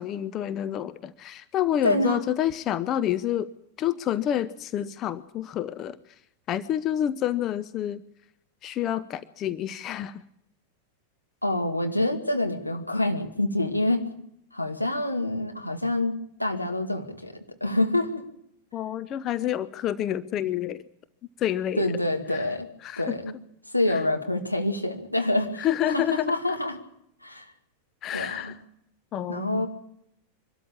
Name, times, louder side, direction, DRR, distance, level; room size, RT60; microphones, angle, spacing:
voice 1, 0.0-3.5 3.8-6.0 6.5-8.0 8.6-10.2 18.7-20.8 21.4-21.9 22.3-22.5 22.8-23.2 23.9-24.0 25.6-26.3 28.0-28.6 29.1-29.7, left 11 dB, 30° left, 14 dB, 0.8 m, -28 dB
voice 2, 1.8-2.2 11.4-14.1 14.5-18.3 21.8-22.7 23.0-23.3 23.7-26.8 27.2-27.5 28.1-28.5 29.3-29.7, left 1 dB, 90° left, 3 dB, 2.1 m, -27 dB
24.0 x 13.0 x 8.7 m, 0.76 s
figure-of-eight pair, 90°, 0 cm